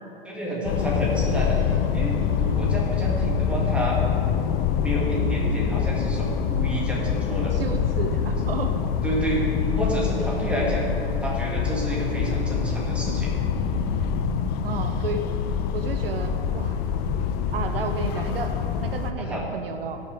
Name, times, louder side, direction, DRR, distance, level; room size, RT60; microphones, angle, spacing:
voice 1, 0.2-4.0 4.8-7.5 9.0-10.9 11.2-13.3 19.2-19.4, right 1 dB, 5° right, -5 dB, 2.3 m, -29 dB
sound 1, 0.7-19.1, left 7 dB, 35° left, 0.6 m, -25 dB
voice 2, 7.5-8.8 14.6-15.2 15.7-16.8 17.5-20.0, right 4 dB, 75° right, 7 dB, 0.8 m, -32 dB
17.5 x 6.3 x 3.5 m, 2.8 s
hypercardioid pair, 110°, 29 cm